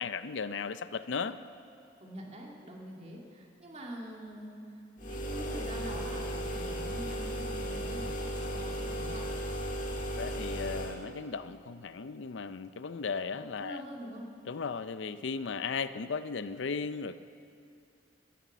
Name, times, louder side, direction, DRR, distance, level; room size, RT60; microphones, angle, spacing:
voice 1, 0.0-1.4 10.1-13.8 14.5-17.1, left 5 dB, 75° left, 12 dB, 0.5 m, -36 dB
voice 2, 2.0-9.4 13.3-14.3, equal, 35° right, -1 dB, 2.1 m, -45 dB
sound 1, 5.0-11.0, equal, 45° left, 1.8 m, -35 dB
15.5 x 11.0 x 7.2 m, 2.5 s
head